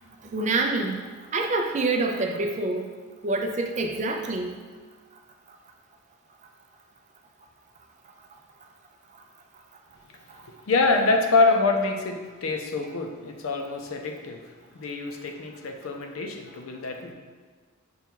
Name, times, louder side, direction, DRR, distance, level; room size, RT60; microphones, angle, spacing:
voice 1, 0.2-1.0 1.3-2.9 3.2-4.6, right 2 dB, 35° right, 3 dB, 0.4 m, -26 dB
voice 2, 10.7-14.4 14.7-17.1, left 3 dB, 75° left, 4 dB, 0.5 m, -25 dB
5.2 x 2.3 x 4.4 m, 1.4 s
head